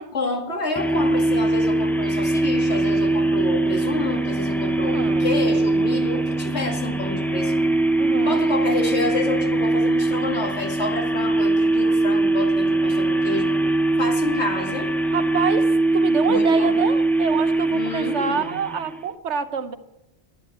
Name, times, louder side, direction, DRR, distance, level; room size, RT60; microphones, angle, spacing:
voice 1, 0.1-7.6 8.2-13.5 14.0-14.9 16.3-16.8 17.7-18.7, left 2 dB, 75° left, 1 dB, 2.6 m, -29 dB
sound 1, 0.8-19.0, right 2 dB, ahead, 0.4 m, -21 dB
voice 2, 4.8-5.3 8.0-8.4 15.1-19.8, right 6 dB, 80° right, 10 dB, 1.2 m, -27 dB
11.0 x 11.0 x 8.1 m, 0.96 s
omnidirectional pair, 1.1 m